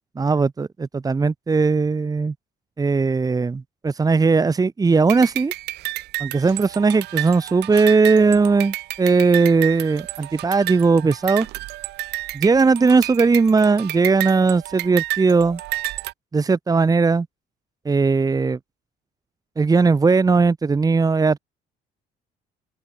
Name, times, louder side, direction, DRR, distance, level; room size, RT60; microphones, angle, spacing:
voice 1, 0.1-2.3 2.8-5.5 6.2-11.5 12.3-15.6 16.3-17.3 17.8-18.6 19.6-21.4, right 4 dB, 20° right, 1.5 m, -18 dB
sound 1, 5.1-16.1, right 18 dB, 80° right, 1.1 m, -31 dB
open air
cardioid pair, 110°, 17 cm